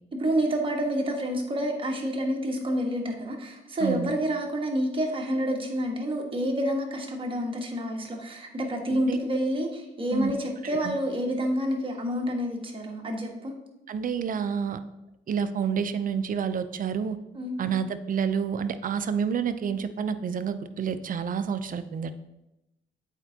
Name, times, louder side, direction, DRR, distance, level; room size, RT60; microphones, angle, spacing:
voice 1, 0.1-13.5 17.3-17.5, equal, 25° right, 1 dB, 1.3 m, -28 dB
voice 2, 3.8-4.1 8.9-9.2 10.1-10.3 10.8-11.0 13.9-14.8 15.3-17.2 17.6-22.1, right 7 dB, 45° right, 11 dB, 0.5 m, -29 dB
8.2 x 4.4 x 2.8 m, 0.91 s
cardioid pair, 90°, 20 cm